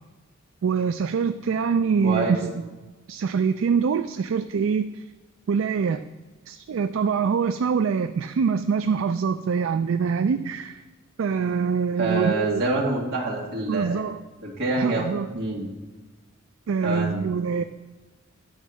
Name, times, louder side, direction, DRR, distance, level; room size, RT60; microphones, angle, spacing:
voice 1, 0.6-2.6 3.1-5.0 5.5-6.0 6.5-10.8 11.2-12.6 13.7-14.2 14.8-15.3 16.7-17.6, right 6 dB, 70° right, 10 dB, 0.3 m, -24 dB
voice 2, 2.0-2.4 12.0-13.9 14.4-15.1 15.3-15.7 16.8-17.2, right 2 dB, 55° right, -3 dB, 2.1 m, -26 dB
9.9 x 4.5 x 6.2 m, 1.2 s
head